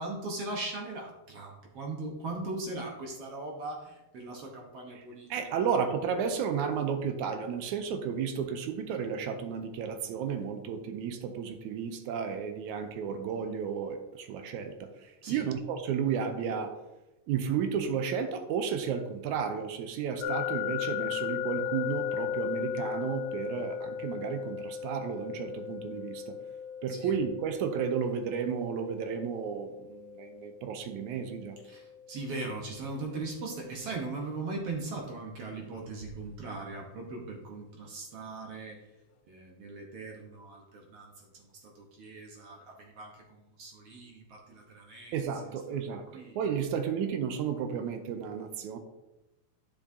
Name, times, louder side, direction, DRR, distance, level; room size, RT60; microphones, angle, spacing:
voice 1, 0.0-5.3 5.6-5.7 15.2-15.5 26.9-27.2 31.6-38.8 39.3-46.4, right 3 dB, 60° right, 0 dB, 1.7 m, -40 dB
voice 2, 5.3-16.8 17.3-26.4 26.8-31.6 45.1-46.0 46.4-48.8, right 7 dB, 80° right, 7 dB, 2.0 m, -33 dB
sound 1, 20.2-33.1, left 9 dB, 80° left, 2.1 m, -37 dB
10.0 x 6.0 x 2.7 m, 0.98 s
omnidirectional pair, 3.6 m